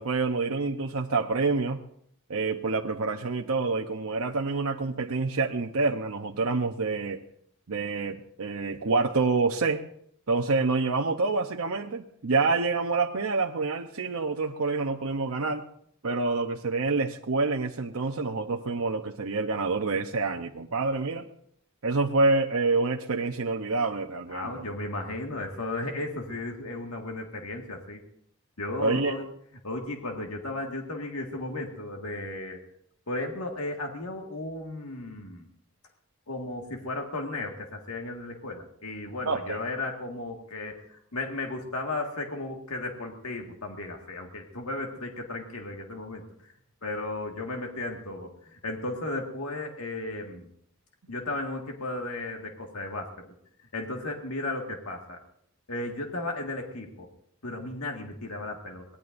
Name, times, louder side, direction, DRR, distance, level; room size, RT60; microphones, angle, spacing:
voice 1, 0.0-1.8 2.3-7.2 7.7-9.8 10.3-15.6 16.0-21.3 21.8-24.6 28.8-29.2 39.3-39.6, right 3 dB, 75° right, 3 dB, 0.8 m, -27 dB
voice 2, 24.3-28.0 28.6-29.3 29.6-32.6 33.1-35.5 36.3-46.5 46.8-50.5 51.1-53.1 53.7-55.2 55.7-57.1 57.4-58.8, left 2 dB, 75° left, 1 dB, 1.8 m, -35 dB
23.5 x 19.0 x 2.6 m, 0.68 s
head